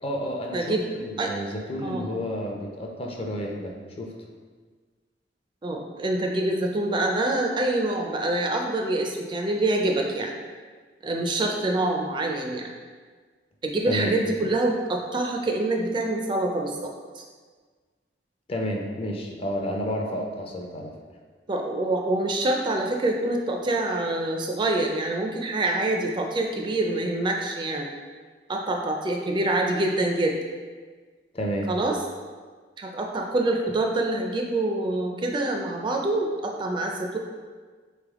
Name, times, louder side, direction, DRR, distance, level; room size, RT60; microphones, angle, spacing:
voice 1, 0.0-4.1 13.9-14.2 18.5-20.9 31.3-31.7, equal, 35° left, 0 dB, 0.5 m, -31 dB
voice 2, 0.5-0.9 1.2-1.3 1.8-2.1 5.6-10.4 11.0-12.7 13.6-17.2 21.5-27.9 28.5-30.4 31.7-32.0 32.8-37.2, right 2 dB, 25° right, 2 dB, 0.3 m, -26 dB
4.0 x 3.4 x 3.5 m, 1.5 s
head